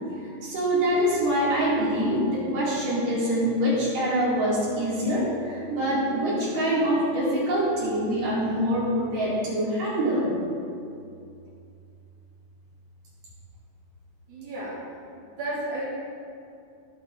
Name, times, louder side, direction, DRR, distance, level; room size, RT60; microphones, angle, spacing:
voice 1, 0.2-10.3, equal, 50° right, -8 dB, 5.2 m, -25 dB
voice 2, 14.3-14.8 15.2-15.9, right 1 dB, 70° right, -8 dB, 4.7 m, -33 dB
18.5 x 10.0 x 3.9 m, 2.5 s
omnidirectional pair, 4.3 m